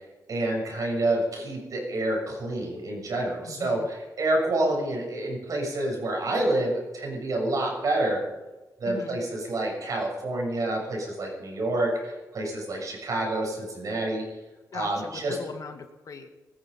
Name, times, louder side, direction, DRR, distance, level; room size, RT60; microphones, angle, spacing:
voice 1, 0.3-8.2 8.8-14.2 14.7-15.4, right 1 dB, 60° right, 0 dB, 6.9 m, -28 dB
voice 2, 3.5-3.9 8.9-9.2 14.7-16.3, left 5 dB, 65° left, 6 dB, 1.9 m, -39 dB
19.5 x 13.5 x 5.4 m, 1.1 s
wide cardioid pair, 110°, 7 cm